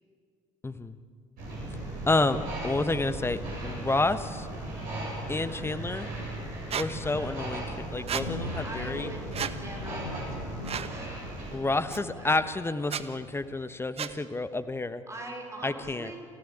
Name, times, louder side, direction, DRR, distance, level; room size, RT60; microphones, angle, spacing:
voice 1, 0.6-1.0 2.1-4.5 5.3-6.1 6.7-9.1 11.5-15.0 15.6-16.1, left 2 dB, 15° left, 12 dB, 1.1 m, -29 dB
sound 1, 1.4-11.6, right 1 dB, 55° right, 7.7 m, -37 dB
sound 2, 4.8-13.6, left 3 dB, 80° left, 1.5 m, -43 dB
Squeak, 6.7-6.9 8.1-8.3 9.3-9.5 10.6-10.9 11.9-12.0 12.8-13.0 14.0-14.1, right 8 dB, 35° right, 1.1 m, -32 dB
voice 2, 7.0-7.4 8.6-11.3 11.7-12.4 15.1-16.2, right 2 dB, 15° right, 1 dB, 4.6 m, -43 dB
27.5 x 15.5 x 8.9 m, 2.2 s
figure-of-eight pair, 55°, 17 cm